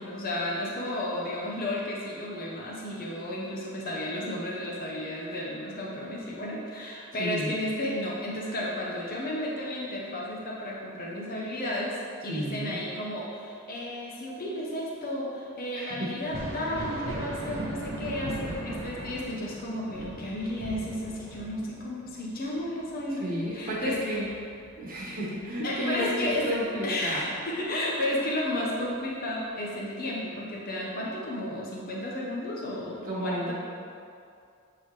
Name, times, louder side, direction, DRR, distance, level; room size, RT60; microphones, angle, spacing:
voice 1, 0.0-24.1 25.6-26.6 26.8-33.5, left 1 dB, 45° left, -4 dB, 0.8 m, -33 dB
voice 2, 7.2-7.5 12.3-12.8 15.7-16.1 23.1-24.3 24.8-27.3 33.0-33.5, equal, 40° right, -6 dB, 1.2 m, -32 dB
Thunder, 16.1-25.5 25.9-27.1 28.6-28.7 29.5-29.7, right 1 dB, 75° right, 1.0 m, -39 dB
8.0 x 3.8 x 3.2 m, 2.4 s
head